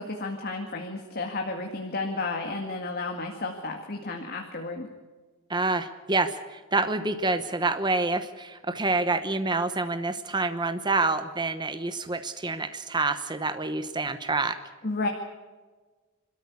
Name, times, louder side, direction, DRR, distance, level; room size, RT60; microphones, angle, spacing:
voice 1, 0.0-4.9 14.8-15.1, left 3 dB, 45° left, 2 dB, 2.0 m, -32 dB
voice 2, 5.5-14.6, right 3 dB, 20° right, 9 dB, 1.0 m, -27 dB
26.5 x 13.5 x 8.4 m, 1.3 s
head